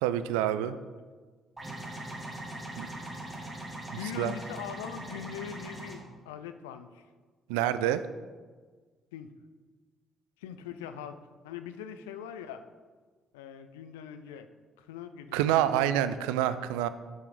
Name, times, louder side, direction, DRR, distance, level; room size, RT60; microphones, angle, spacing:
voice 1, 0.0-0.7 2.8-2.9 4.2-4.3 7.5-8.0 15.3-16.9, right 11 dB, 70° right, 13 dB, 0.3 m, -27 dB
sound 1, 1.6-5.9, right 1 dB, 20° right, 2.1 m, -41 dB
voice 2, 4.0-7.1 9.1-9.3 10.4-12.6 13.3-14.5 14.8-16.0, left 8 dB, 75° left, 10 dB, 0.4 m, -42 dB
6.1 x 5.8 x 4.9 m, 1.4 s
figure-of-eight pair, 45°, 0 cm